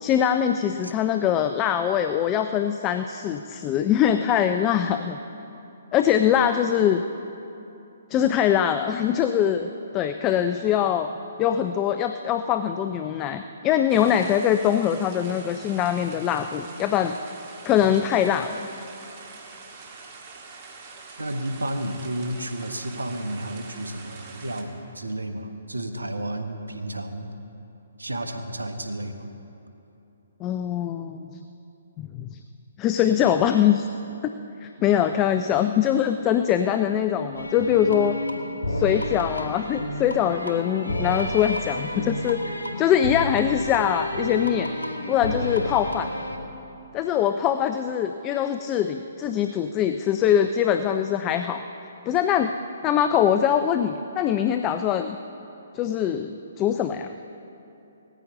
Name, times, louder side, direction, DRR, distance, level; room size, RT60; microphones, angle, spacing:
voice 1, 0.0-5.2 5.9-7.0 8.1-11.1 11.4-17.2 17.6-18.6 30.4-31.4 32.0-32.4 32.8-33.9 34.6-38.2 38.7-44.7 45.1-46.1 46.9-51.6 52.1-52.5 52.8-55.2 55.7-57.1, left 9 dB, 25° left, 8 dB, 0.4 m, -23 dB
sound 1, 13.9-24.6, right 4 dB, 35° right, 1.7 m, -44 dB
voice 2, 21.2-27.3 28.0-29.3, right 1 dB, 85° right, 6 dB, 1.2 m, -32 dB
sound 2, 37.3-46.4, left 1 dB, 85° left, 1.4 m, -30 dB
18.5 x 14.0 x 3.8 m, 2.9 s
figure-of-eight pair, 130°, 0 cm